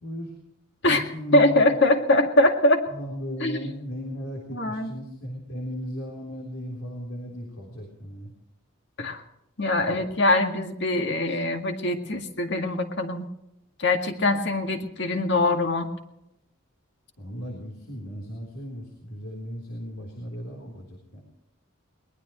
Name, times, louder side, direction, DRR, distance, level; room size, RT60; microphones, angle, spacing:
voice 1, 0.0-0.3 0.9-1.8 2.9-8.3 17.2-21.2, equal, 80° left, 0 dB, 3.7 m, -36 dB
voice 2, 1.3-2.9 3.4-3.6 4.5-4.9 9.0-9.2 9.6-13.3 13.8-15.9, left 2 dB, 55° left, 4 dB, 2.0 m, -22 dB
22.0 x 20.0 x 3.1 m, 0.85 s
head